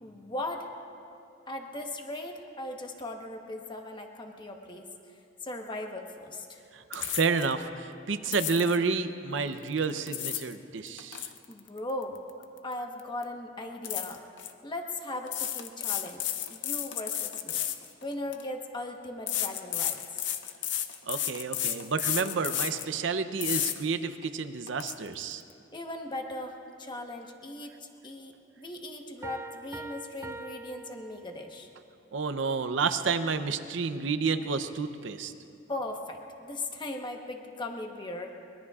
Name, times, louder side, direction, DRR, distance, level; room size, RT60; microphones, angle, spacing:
voice 1, 0.0-0.7 1.5-4.9 5.4-6.6 11.5-12.2 12.6-14.2 14.6-17.6 18.0-20.2 25.7-27.7 28.0-31.7 35.7-38.3, left 1 dB, 25° left, 3 dB, 1.1 m, -38 dB
voice 2, 6.7-11.3 21.1-25.4 32.1-35.3, right 4 dB, 90° right, 10 dB, 0.7 m, -30 dB
sound 1, 6.9-7.5 8.3-8.8 9.8-10.5 10.9-12.7 13.0-13.2 13.8-14.5 15.3-18.4 19.3-22.9 23.4-23.8 24.2-24.3 24.7-24.9, left 11 dB, 70° left, 0.7 m, -32 dB
Piano, 29.2-31.7, right 2 dB, 15° right, 0.4 m, -44 dB
23.5 x 21.5 x 2.4 m, 2.6 s
head